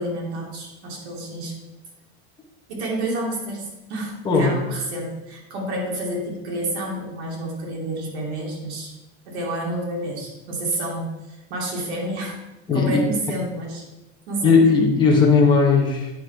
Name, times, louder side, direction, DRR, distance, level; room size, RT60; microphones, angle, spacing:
voice 1, 0.0-1.6 2.7-8.9 9.2-12.4 12.7-13.9 14.3-14.7, right 1 dB, 80° right, -2 dB, 2.8 m, -29 dB
voice 2, 12.7-13.0 14.4-16.1, left 4 dB, 15° left, -2 dB, 1.1 m, -17 dB
8.9 x 5.9 x 4.6 m, 1.0 s
supercardioid pair, 175°, 33 cm